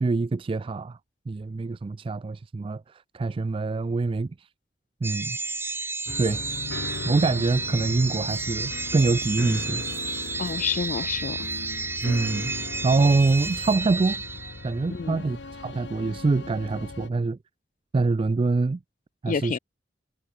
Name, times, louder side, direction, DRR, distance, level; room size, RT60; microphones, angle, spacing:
voice 1, 0.0-1.0 1.3-4.5 5.0-5.4 6.2-6.5 7.0-9.8 12.0-14.2 14.6-17.4 17.9-18.8 19.2-19.6, right 3 dB, 30° right, 0.3 m, -25 dB
sound 1, 5.0-14.9, right 3 dB, 15° right, 1.1 m, -32 dB
sound 2, 6.1-17.1, left 2 dB, 70° left, 1.3 m, -38 dB
sound 3, 7.6-13.8, right 8 dB, 60° right, 4.2 m, -57 dB
voice 2, 10.4-11.5 14.9-15.2 19.3-19.6, left 6 dB, 45° left, 0.4 m, -29 dB
head